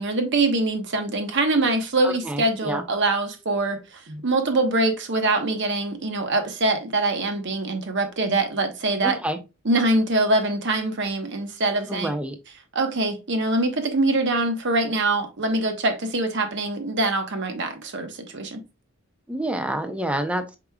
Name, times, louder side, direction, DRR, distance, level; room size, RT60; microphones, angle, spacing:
voice 1, 0.0-9.2 9.6-12.1 12.7-18.6, right 2 dB, 60° right, 1.0 m, -24 dB
voice 2, 2.0-2.8 9.0-9.4 11.9-12.4 19.3-20.6, right 1 dB, 5° right, 0.6 m, -28 dB
4.9 x 4.6 x 2.3 m
head